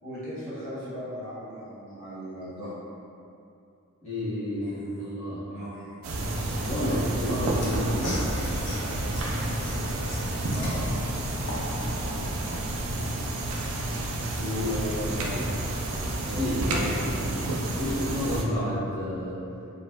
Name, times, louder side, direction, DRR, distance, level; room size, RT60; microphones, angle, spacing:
voice 1, 0.0-2.7 4.6-5.1 5.5-5.9 6.8-7.1 10.5-11.0 14.5-15.6 16.1-17.5, equal, 80° left, -12 dB, 1.0 m, -37 dB
voice 2, 4.0-5.5 6.6-8.2 14.4-14.7 15.3-15.5 16.4-16.9 17.8-19.5, equal, 30° left, -13 dB, 0.7 m, -30 dB
sound 1, 6.0-18.4, right 1 dB, 80° right, 0.3 m, -30 dB
Mechanisms / Sawing, 7.6-12.3, left 1 dB, 55° left, 0.4 m, -36 dB
2.4 x 2.4 x 2.2 m, 2.6 s
head